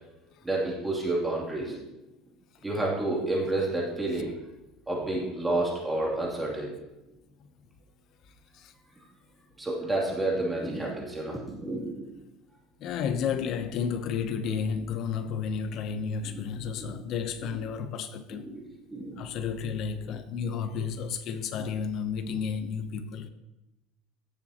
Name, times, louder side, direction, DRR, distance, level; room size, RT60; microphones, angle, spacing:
voice 1, 0.4-1.8 2.6-4.3 4.9-6.7 9.6-12.1 16.3-16.4 16.8-16.9 18.3-18.6 18.9-19.3, right 2 dB, 10° right, 2.9 m, -30 dB
voice 2, 12.8-18.5 19.2-23.3, left 6 dB, 50° left, 0.9 m, -32 dB
16.5 x 7.2 x 3.0 m
cardioid pair, 140°, 0 cm